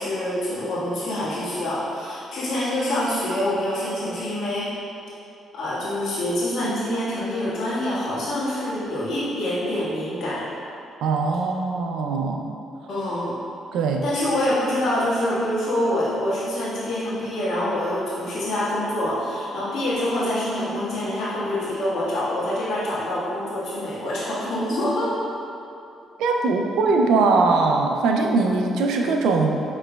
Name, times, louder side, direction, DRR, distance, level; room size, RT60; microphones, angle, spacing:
voice 1, 0.0-4.7 5.5-10.4 12.9-13.3 14.0-25.1, left 1 dB, 75° left, -9 dB, 1.4 m, -26 dB
voice 2, 11.0-12.5 13.7-14.0 26.2-29.6, right 3 dB, 85° right, 2 dB, 0.4 m, -21 dB
5.9 x 3.1 x 2.2 m, 2.6 s
cardioid pair, 90°, 0 cm